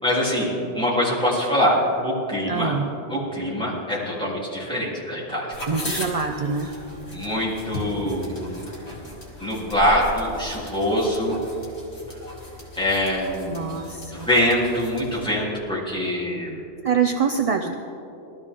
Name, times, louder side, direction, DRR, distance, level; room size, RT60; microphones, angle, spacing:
voice 1, 0.0-2.7 3.1-5.5 7.1-8.4 9.4-11.4 12.8-13.6 14.1-16.5, equal, 5° left, -7 dB, 3.3 m, -24 dB
voice 2, 2.5-2.9 5.7-6.7 13.4-14.3 16.8-17.8, right 6 dB, 45° right, 4 dB, 0.4 m, -24 dB
sound 1, 5.5-15.2, left 1 dB, 65° left, 3.1 m, -37 dB
19.0 x 13.0 x 3.7 m, 2.9 s
omnidirectional pair, 1.2 m